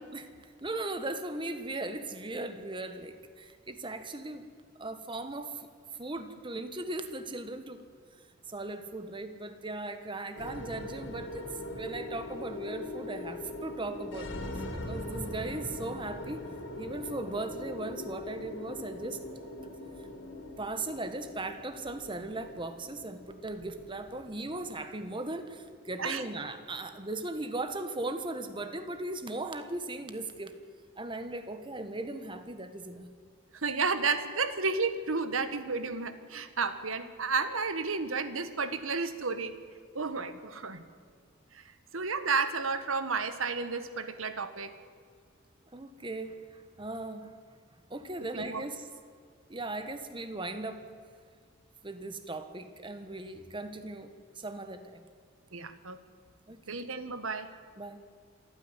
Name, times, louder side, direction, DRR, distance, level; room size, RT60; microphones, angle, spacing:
voice 1, 0.1-4.5 4.8-5.7 6.0-7.8 8.5-11.4 11.7-16.4 16.8-19.2 20.6-30.5 31.0-33.1 45.7-47.4 47.9-48.8 49.5-50.8 51.8-55.0 56.5-56.8 57.8-58.0, right 2 dB, 25° right, 9 dB, 1.3 m, -38 dB
sound 1, 10.4-28.7, left 1 dB, 70° left, 3.0 m, -42 dB
voice 2, 33.5-39.6 39.9-40.8 41.9-44.7 48.3-48.6 55.5-56.0 56.7-57.5, right 4 dB, 90° right, 11 dB, 1.4 m, -32 dB
27.0 x 9.9 x 9.8 m, 2.1 s
head